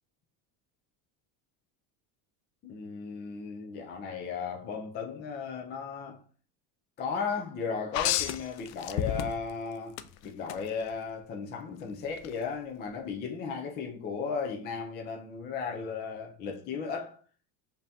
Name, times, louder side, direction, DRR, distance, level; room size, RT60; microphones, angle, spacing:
voice 1, 2.6-6.2 7.0-17.2, left 5 dB, 25° left, 0.3 m, -35 dB
sound 1, 7.9-9.6 10.0-10.6 12.2-12.3, left 11 dB, 85° left, 0.5 m, -30 dB
5.2 x 2.8 x 2.6 m
supercardioid pair, 130°, 50 cm